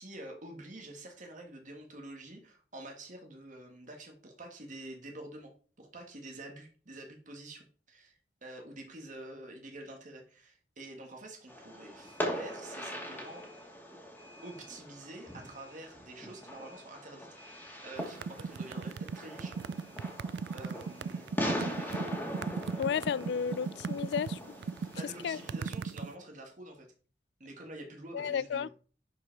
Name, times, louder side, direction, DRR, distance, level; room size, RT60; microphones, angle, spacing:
voice 1, 0.0-13.5 14.4-19.6 20.5-22.0 24.8-26.9 27.4-28.7, right 1 dB, 45° right, 1.6 m, -48 dB
Fireworks, 11.5-25.7, equal, 10° left, 2.1 m, -41 dB
sound 1, 18.0-26.1, right 5 dB, 70° right, 0.4 m, -37 dB
voice 2, 22.8-24.4 25.2-25.4 28.1-28.7, left 7 dB, 65° left, 0.3 m, -32 dB
11.0 x 4.8 x 4.6 m
head